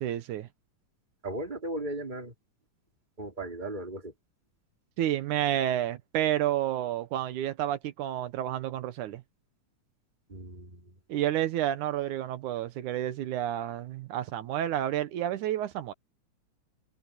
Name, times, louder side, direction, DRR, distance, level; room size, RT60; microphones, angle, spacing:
voice 1, 0.0-0.5 5.0-9.2 11.1-15.9, right 12 dB, 80° right, 2.5 m, -30 dB
voice 2, 1.2-2.3 3.2-4.1 10.3-11.0, right 1 dB, 15° right, 3.6 m, -37 dB
omnidirectional pair, 3.5 m